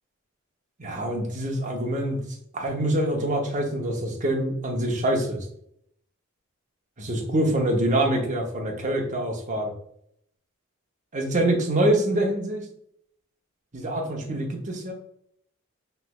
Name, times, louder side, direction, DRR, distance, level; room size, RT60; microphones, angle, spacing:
voice 1, 0.8-2.2 2.5-5.4 7.0-9.7 11.1-12.7 13.7-14.9, right 1 dB, 35° right, 1 dB, 0.7 m, -25 dB
3.1 x 3.0 x 2.3 m, 0.70 s
head